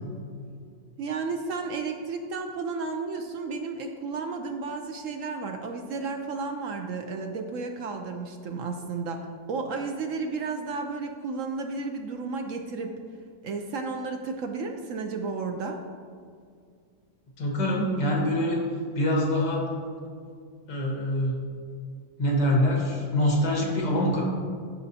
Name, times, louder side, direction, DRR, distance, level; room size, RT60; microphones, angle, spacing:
voice 1, 1.0-13.0 13.4-15.8, right 4 dB, 70° right, 4 dB, 0.7 m, -33 dB
voice 2, 17.4-18.6 18.9-19.7 20.7-21.4 22.2-24.2, left 1 dB, 75° left, -2 dB, 2.2 m, -24 dB
14.0 x 5.1 x 2.8 m, 2.2 s
omnidirectional pair, 1.8 m